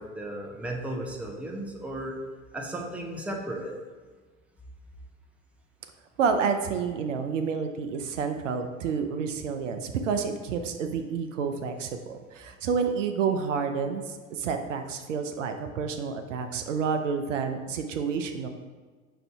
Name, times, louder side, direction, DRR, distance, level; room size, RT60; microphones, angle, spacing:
voice 1, 0.0-2.2 2.5-3.8, right 1 dB, 5° right, 0 dB, 0.6 m, -35 dB
voice 2, 6.2-18.5, right 6 dB, 75° right, 6 dB, 0.5 m, -29 dB
5.7 x 2.6 x 3.4 m, 1.4 s
figure-of-eight pair, 70°, 38 cm